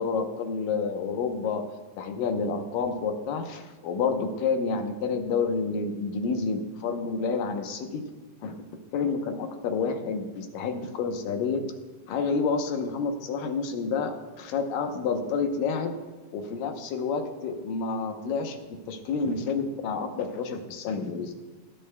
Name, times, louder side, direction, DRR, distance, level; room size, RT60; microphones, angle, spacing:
voice 1, 0.0-1.6 2.0-8.0 8.4-8.6 8.9-11.6 12.1-16.0 16.3-18.6 18.9-21.3, left 5 dB, 80° left, 5 dB, 2.6 m, -29 dB
21.5 x 10.5 x 2.3 m, 1.3 s
omnidirectional pair, 3.8 m